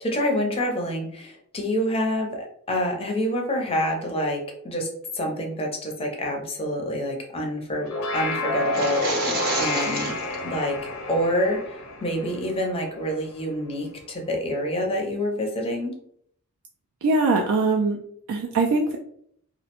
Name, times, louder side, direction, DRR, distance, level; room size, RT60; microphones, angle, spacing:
voice 1, 0.0-4.9 5.1-10.2 10.4-15.9, equal, 25° left, 1 dB, 0.5 m, -27 dB
sound 1, 7.7-13.2, left 2 dB, 75° left, 0.5 m, -30 dB
sound 2, 8.6-10.4, right 2 dB, 45° right, 0.6 m, -29 dB
voice 2, 17.0-18.0 18.3-19.0, right 3 dB, 70° right, 2 dB, 0.3 m, -21 dB
2.3 x 2.1 x 2.8 m, 0.66 s
head